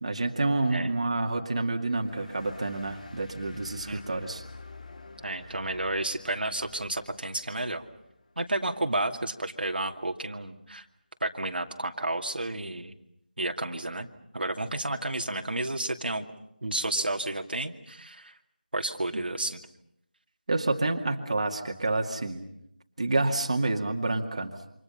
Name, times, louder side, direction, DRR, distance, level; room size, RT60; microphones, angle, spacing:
voice 1, 0.0-4.4 19.1-19.2 20.5-22.5 23.0-24.5, right 2 dB, 40° right, 3 dB, 2.3 m, -28 dB
sound 1, 1.9-9.0, left 3 dB, 50° left, 2.5 m, -49 dB
voice 2, 3.9-4.2 5.2-7.9 8.4-10.8 11.2-13.0 13.4-14.1 14.3-16.3 16.6-18.3 18.7-19.6, right 2 dB, 90° right, 3 dB, 2.5 m, -31 dB
29.0 x 26.5 x 5.7 m, 0.76 s
figure-of-eight pair, 175°, 5 cm